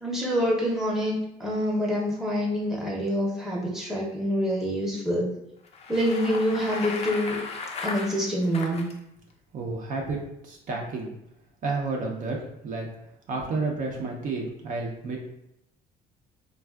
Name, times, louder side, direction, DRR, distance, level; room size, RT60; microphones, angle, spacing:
voice 1, 0.0-5.3 5.9-7.4 7.8-8.9, equal, 5° right, -4 dB, 0.7 m, -26 dB
Bicycle, 5.6-8.9, left 4 dB, 40° left, 0.4 m, -36 dB
voice 2, 9.5-10.2 10.4-11.1 11.6-12.9 13.3-15.2, right 3 dB, 50° right, 0 dB, 0.5 m, -31 dB
3.4 x 2.3 x 2.3 m, 0.79 s
cardioid pair, 110°, 17 cm